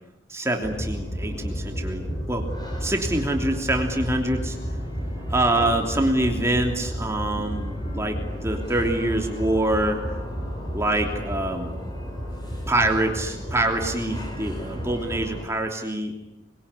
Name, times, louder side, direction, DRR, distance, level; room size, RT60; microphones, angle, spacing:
voice 1, 0.3-2.0 2.3-2.4 2.8-4.6 5.3-8.2 8.4-10.0 10.7-11.7 12.7-16.1, right 1 dB, 15° right, 2 dB, 3.1 m, -25 dB
sound 1, 0.6-15.4, equal, 20° left, 5.7 m, -32 dB
27.5 x 22.5 x 9.8 m, 0.93 s
head